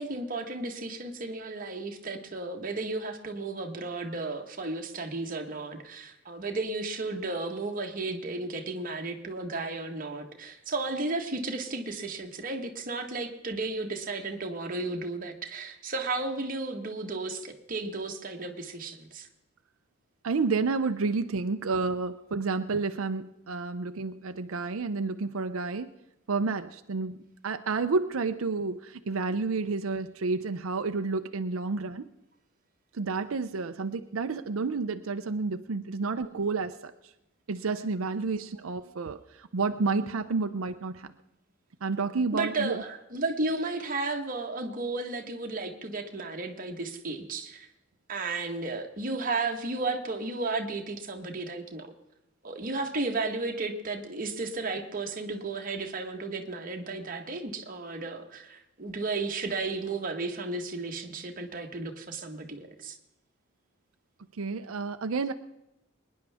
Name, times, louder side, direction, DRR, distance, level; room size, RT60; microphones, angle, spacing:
voice 1, 0.0-19.3 42.3-47.7 48.1-51.9 52.4-62.9, right 3 dB, 45° right, 3 dB, 1.4 m, -33 dB
voice 2, 20.2-25.9 26.3-27.2 27.4-32.1 32.9-36.9 37.5-41.1 41.8-42.8 64.4-65.3, right 4 dB, 90° right, 8 dB, 0.6 m, -30 dB
23.5 x 10.5 x 3.5 m, 0.89 s
head